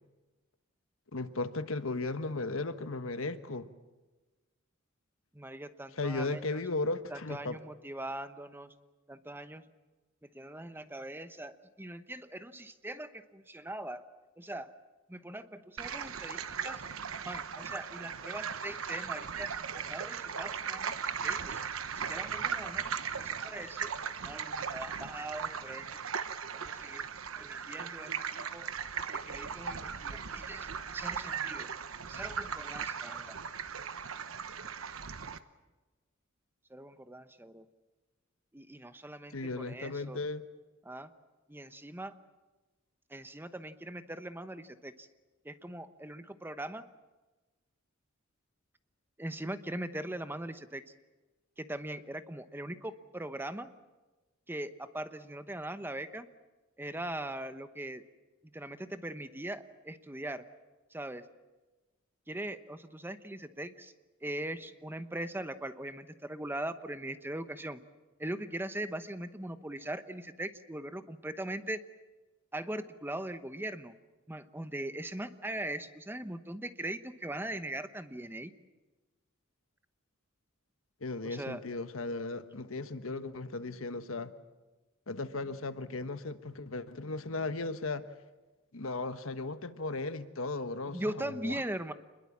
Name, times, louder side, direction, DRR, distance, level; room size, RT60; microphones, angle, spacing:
voice 1, 1.1-3.7 6.0-7.5 39.3-40.4 81.0-84.3 85.1-88.0 88.7-91.6, left 3 dB, 80° left, 10 dB, 1.3 m, -36 dB
voice 2, 5.3-6.6 7.1-8.7 9.1-9.7 10.2-14.0 14.4-14.7 15.1-16.8 17.2-19.5 19.7-21.6 21.9-23.9 24.2-26.0 26.5-27.0 27.4-28.7 29.1-31.7 32.1-33.4 36.7-37.6 38.5-40.2 40.8-41.1 41.5-42.1 43.1-45.1 45.4-46.8 49.2-50.8 51.6-53.7 54.5-56.3 56.8-58.0 58.5-60.4 60.9-61.2 62.3-63.9 64.2-67.8 68.2-71.8 72.5-73.9 74.3-78.5 81.2-81.6 90.9-91.9, right 1 dB, 10° right, 10 dB, 1.0 m, -41 dB
sound 1, 15.8-35.4, right 7 dB, 85° right, 1.1 m, -38 dB
27.0 x 21.5 x 7.4 m, 1.2 s
head